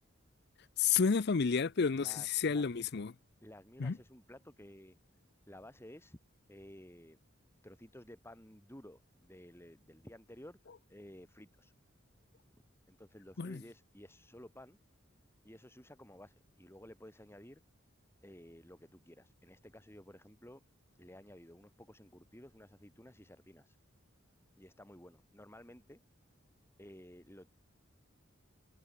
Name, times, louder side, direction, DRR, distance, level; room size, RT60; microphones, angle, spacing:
voice 1, 0.8-3.1 3.8-4.0 13.4-13.6, left 6 dB, 55° left, 0.6 m, -30 dB
voice 2, 2.0-2.8 3.4-5.0 5.5-6.2 6.5-7.2 7.6-10.6 10.9-11.7 12.9-14.8 15.4-17.6 18.2-20.6 21.0-23.8 24.6-26.0 26.8-27.5, left 1 dB, 10° left, 4.9 m, -54 dB
head